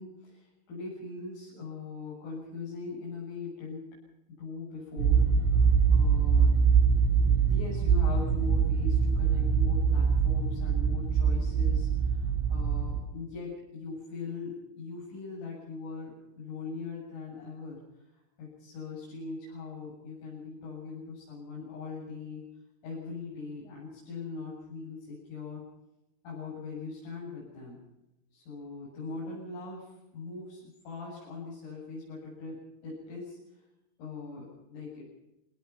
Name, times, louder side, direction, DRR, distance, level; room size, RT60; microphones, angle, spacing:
voice 1, 0.0-4.0 4.4-6.5 7.2-22.4 22.8-25.6 26.2-27.8 28.3-33.6 34.0-35.1, left 4 dB, 80° left, -6 dB, 10.5 m, -41 dB
sound 1, 5.0-13.0, right 6 dB, 85° right, 5.4 m, -24 dB
27.5 x 19.0 x 5.9 m, 0.95 s
omnidirectional pair, 5.6 m